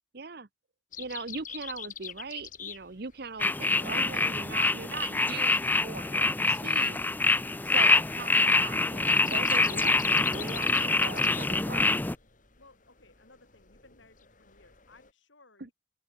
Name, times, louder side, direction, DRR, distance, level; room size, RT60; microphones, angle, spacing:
voice 1, 0.1-0.5 1.0-7.1 7.7-11.9 15.6-15.7, right 4 dB, 55° right, 1.0 m, -40 dB
sound 1, 0.9-15.1, left 9 dB, 45° left, 2.7 m, -45 dB
sound 2, 3.4-12.1, left 3 dB, 10° left, 0.4 m, -25 dB
voice 2, 12.6-15.7, left 3 dB, 85° left, 6.3 m, -60 dB
open air
head